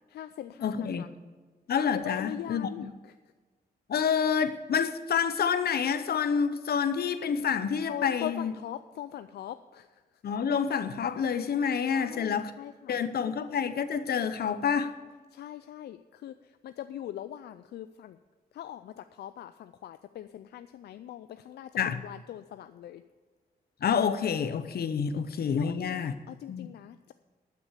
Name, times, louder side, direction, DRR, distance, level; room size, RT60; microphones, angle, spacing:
voice 1, 0.1-1.1 1.9-3.2 7.9-10.2 11.9-13.0 15.3-18.2 18.5-21.7 22.0-23.0 25.5-27.1, left 11 dB, 90° left, 0.4 m, -41 dB
voice 2, 0.6-1.1 1.7-2.7 3.9-8.5 10.2-12.5 12.9-14.9 21.8-22.0 23.8-26.1 26.5-26.7, left 7 dB, 70° left, 0.8 m, -28 dB
12.5 x 6.0 x 8.2 m
cardioid pair, 70°, 16 cm